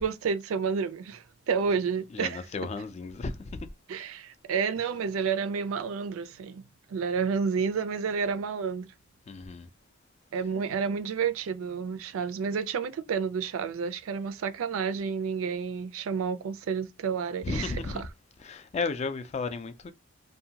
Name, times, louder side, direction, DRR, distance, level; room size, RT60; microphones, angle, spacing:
voice 1, 0.0-2.4 3.9-6.6 6.9-8.9 10.3-18.1, right 6 dB, 85° right, 0.4 m, -30 dB
voice 2, 2.1-3.7 9.3-9.7 17.4-18.0 18.4-19.9, left 3 dB, 30° left, 0.3 m, -33 dB
2.6 x 2.1 x 2.7 m
head